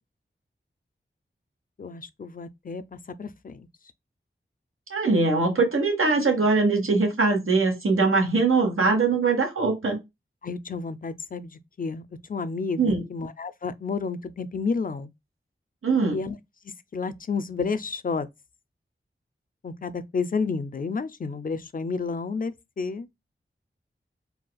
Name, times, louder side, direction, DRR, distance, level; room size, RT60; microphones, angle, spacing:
voice 1, 1.8-2.8 3.2-3.7 10.4-12.0 12.3-15.1 16.1-16.4 16.9-18.3 19.6-23.1, left 4 dB, 40° left, 0.4 m, -31 dB
voice 2, 4.9-10.0 12.8-13.0 15.8-16.2, right 3 dB, 85° right, 1.1 m, -22 dB
4.1 x 2.3 x 2.2 m
cardioid pair, 45°, 21 cm